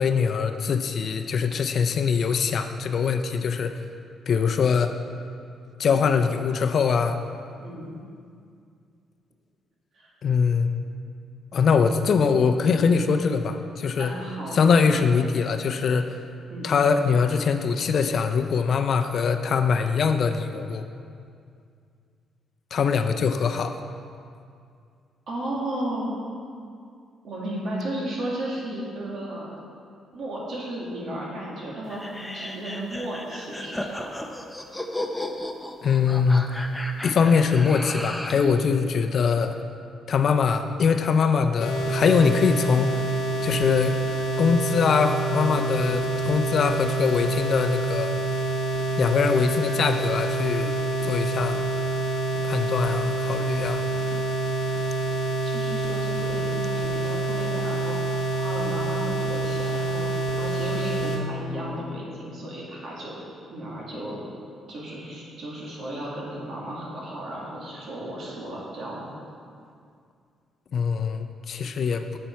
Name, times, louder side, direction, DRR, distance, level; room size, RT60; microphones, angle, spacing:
voice 1, 0.0-3.7 4.3-4.9 5.8-7.2 10.2-10.7 11.5-14.1 14.5-16.2 16.6-20.8 22.7-23.8 35.8-36.5 37.0-39.6 40.1-43.1 43.4-44.0 44.4-48.1 49.0-50.8 51.0-51.6 52.4-53.8 70.7-72.2, left 6 dB, 55° left, 7 dB, 0.5 m, -22 dB
voice 2, 7.6-8.0 9.9-10.1 14.0-14.6 16.5-16.9 25.3-26.3 27.2-29.5 30.1-34.3 55.4-63.1 63.5-64.2 64.7-69.3, right 1 dB, 60° right, -4 dB, 2.2 m, -34 dB
sound 1, 31.9-38.5, left 1 dB, 5° left, 0.6 m, -34 dB
sound 2, 41.6-61.2, right 3 dB, 85° left, 0.9 m, -27 dB
7.6 x 7.0 x 4.6 m, 2.3 s
cardioid pair, 90°, 0 cm